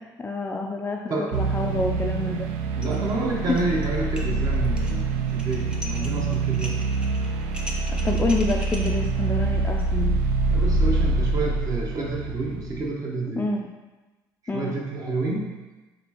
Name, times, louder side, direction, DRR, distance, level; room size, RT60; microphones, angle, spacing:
voice 1, 0.2-2.5 3.5-3.6 8.0-10.2 13.4-13.7 14.5-14.8, left 2 dB, 20° left, 0 dB, 0.3 m, -27 dB
sound 1, 1.3-12.9, right 3 dB, 90° right, 0.4 m, -25 dB
sound 2, 2.8-3.1 3.4-3.9 4.2-8.9, left 1 dB, 10° right, 0.7 m, -39 dB
voice 2, 2.8-6.9 10.5-13.5 14.5-15.6, right 2 dB, 45° right, -2 dB, 0.9 m, -29 dB
4.2 x 3.1 x 2.9 m, 1.2 s
supercardioid pair, 85°, 9 cm